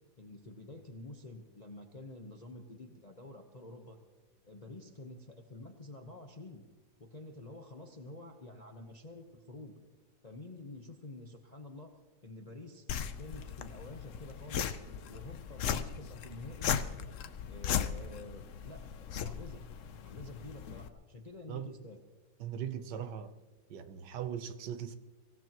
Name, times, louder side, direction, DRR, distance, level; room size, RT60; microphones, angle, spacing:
voice 1, 0.2-4.0 4.4-6.6 7.0-9.7 10.2-11.9 12.2-12.9 13.2-16.7 17.4-19.6 20.0-22.0, left 2 dB, 30° left, 0.8 m, -49 dB
sound 1, 12.9-20.9, left 8 dB, 60° left, 0.8 m, -37 dB
voice 2, 22.4-23.4 23.7-25.0, right 9 dB, 75° right, 1.4 m, -39 dB
24.0 x 16.5 x 3.0 m
omnidirectional pair, 2.0 m